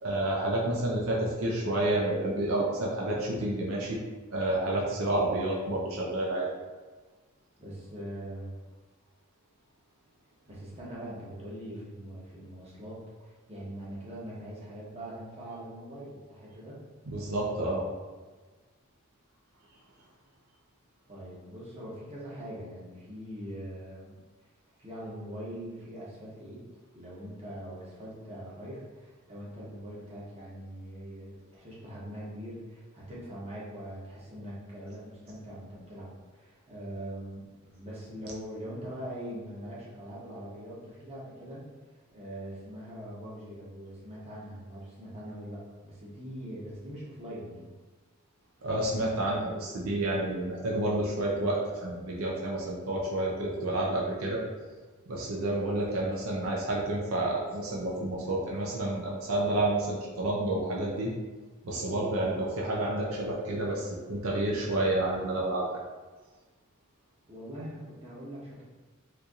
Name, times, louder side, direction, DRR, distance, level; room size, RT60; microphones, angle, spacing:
voice 1, 0.0-4.0 4.3-6.5 17.1-17.9 48.6-54.4 55.1-61.1 61.6-65.8, right 1 dB, 75° right, -3 dB, 0.6 m, -29 dB
voice 2, 7.6-8.5 10.5-16.8 21.1-24.2 24.8-26.6 26.9-41.6 42.1-47.7 67.3-68.6, equal, 30° right, -7 dB, 0.9 m, -42 dB
4.3 x 2.6 x 2.4 m, 1.3 s
head